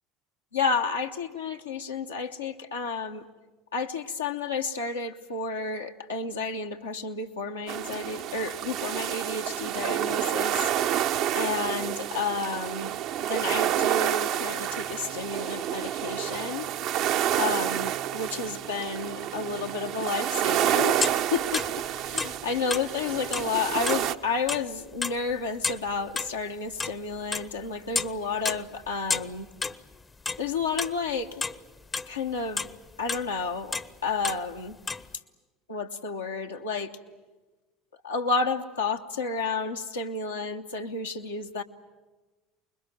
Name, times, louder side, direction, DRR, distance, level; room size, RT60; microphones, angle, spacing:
voice 1, 0.5-3.3 3.7-10.7 11.3-12.9 13.2-16.7 17.4-21.7 22.0-29.5 30.4-31.4 32.1-32.7 33.0-34.8 35.7-36.9 38.0-41.6, left 4 dB, 85° left, 1 dB, 1.1 m, -31 dB
sound 1, 7.7-24.1, right 11 dB, 55° right, 0.7 m, -29 dB
sound 2, 21.0-24.7 25.0-26.3 26.8-27.7 28.0-28.2 28.4-31.0 31.2-32.2 32.6-33.3 33.7-33.9 34.2-34.4 34.7-35.1, left 4 dB, 25° left, 0.7 m, -31 dB
25.5 x 21.5 x 9.1 m, 1.2 s
figure-of-eight pair, 65°, 0 cm